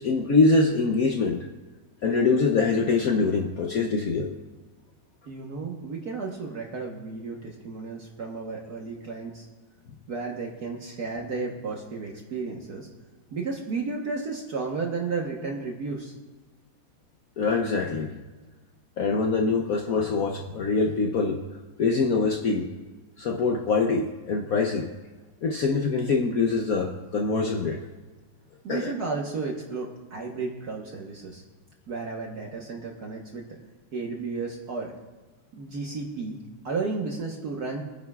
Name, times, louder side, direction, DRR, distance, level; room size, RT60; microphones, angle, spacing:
voice 1, 0.0-1.4 2.0-4.4 17.4-18.1 19.0-21.4 21.8-22.7 23.2-24.9 25.4-27.8 28.7-28.9, left 4 dB, 60° left, 2 dB, 1.0 m, -24 dB
voice 2, 5.3-9.5 10.1-12.9 13.3-16.1 28.6-31.4 31.9-33.4 33.9-34.9 35.5-36.4 36.6-37.9, right 4 dB, 55° right, -1 dB, 1.6 m, -33 dB
24.5 x 10.0 x 2.4 m, 1.3 s
omnidirectional pair, 2.1 m